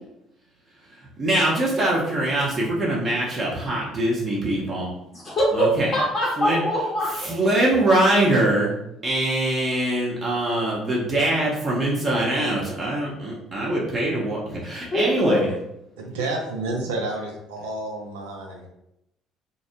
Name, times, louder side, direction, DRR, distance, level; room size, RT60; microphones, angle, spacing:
voice 1, 1.2-4.9 5.5-5.9 6.4-6.6 7.1-8.7 9.0-15.5, right 1 dB, 35° right, -4 dB, 0.8 m, -23 dB
voice 2, 5.1-7.3 14.9-15.4, equal, 45° left, -7 dB, 0.9 m, -23 dB
voice 3, 16.0-18.7, right 2 dB, 75° right, 0 dB, 0.5 m, -30 dB
2.6 x 2.0 x 2.9 m, 0.81 s
figure-of-eight pair, 55°, 0 cm